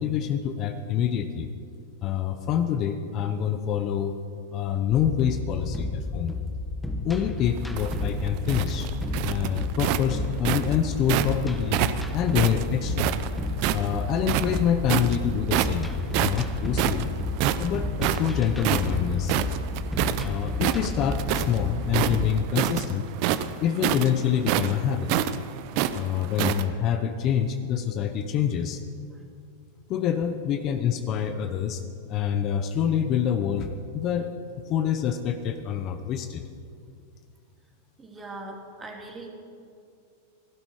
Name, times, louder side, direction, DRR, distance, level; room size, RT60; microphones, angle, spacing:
voice 1, 0.0-1.5 2.0-4.2 4.5-6.3 7.0-8.9 9.2-11.8 12.1-13.1 13.7-15.9 16.2-17.1 17.6-19.4 20.2-23.0 23.6-25.1 25.9-28.8 29.9-31.8 32.1-34.3 34.7-36.4, left 9 dB, 40° left, 8 dB, 0.8 m, -26 dB
sound 1, 4.9-22.3, left 1 dB, 5° left, 1.2 m, -31 dB
sound 2, 7.6-11.3 11.7-13.9 14.2-15.2 15.5-15.9 16.1-20.2 20.5-21.6 21.9-26.6, right 12 dB, 55° right, 0.7 m, -26 dB
voice 2, 38.0-39.3, right 2 dB, 20° right, 0 dB, 2.7 m, -40 dB
15.5 x 11.5 x 4.8 m, 2.4 s
hypercardioid pair, 115°, 0 cm